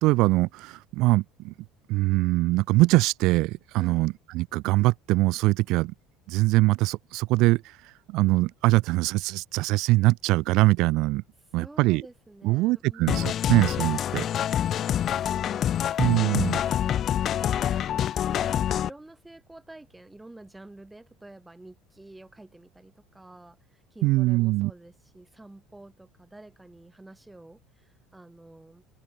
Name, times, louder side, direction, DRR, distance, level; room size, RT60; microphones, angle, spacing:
voice 1, 0.0-1.5 1.9-5.9 6.3-11.2 11.5-12.0 12.4-14.2 16.0-16.6 24.0-24.7, right 20 dB, 65° right, 1.3 m, -23 dB
voice 2, 3.7-4.1 11.5-13.3 14.6-16.0 16.4-17.8 18.2-28.8, right 2 dB, 5° right, 5.6 m, -49 dB
sound 1, 13.1-18.9, left 10 dB, 40° left, 0.8 m, -26 dB
open air
cardioid pair, 140°, 0 cm